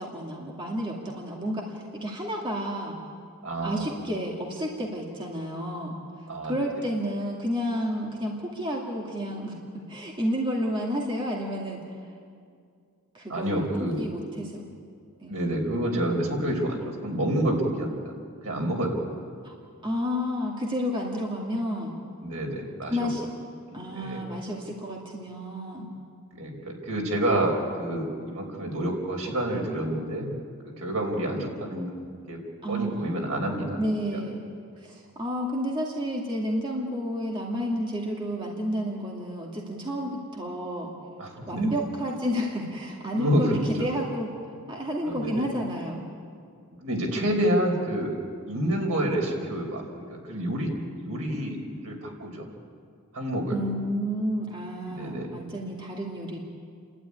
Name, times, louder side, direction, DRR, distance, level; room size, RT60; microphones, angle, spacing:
voice 1, 0.0-3.0 3.6-6.0 6.4-11.8 13.1-14.6 15.2-15.3 19.4-19.5 19.8-22.0 22.9-23.3 23.7-25.9 32.6-33.5 33.8-34.5 34.8-40.9 41.5-44.3 44.7-46.0 47.3-47.7 53.5-56.4, equal, 20° right, -2 dB, 2.2 m, -31 dB
voice 2, 3.4-3.8 6.3-6.5 13.3-14.0 15.3-18.1 18.4-19.0 22.2-23.1 23.7-24.3 26.4-30.3 30.8-32.0 32.3-32.4 32.7-33.8 41.2-41.7 43.1-43.9 45.0-45.4 46.8-48.2 48.5-49.8 50.1-50.7 51.0-51.6 51.8-52.4 53.1-53.5 54.9-55.3, right 1 dB, 80° right, 1 dB, 4.7 m, -28 dB
29.5 x 12.5 x 9.8 m, 2.3 s
head